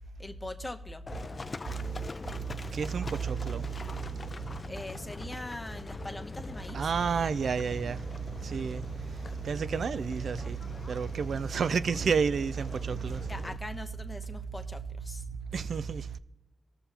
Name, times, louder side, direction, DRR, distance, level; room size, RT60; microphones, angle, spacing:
voice 1, 0.2-1.0 4.6-6.9 13.1-15.3 15.7-15.8, left 2 dB, 20° left, 0.9 m, -41 dB
Livestock farm animals working animals, 1.1-13.6, left 3 dB, 40° left, 0.3 m, -42 dB
voice 2, 2.7-3.6 6.7-8.0 8.4-8.8 9.4-10.6 10.9-13.2 15.5-16.1, right 6 dB, 80° right, 0.3 m, -30 dB
19.0 x 6.9 x 2.9 m
wide cardioid pair, 100°, 0 cm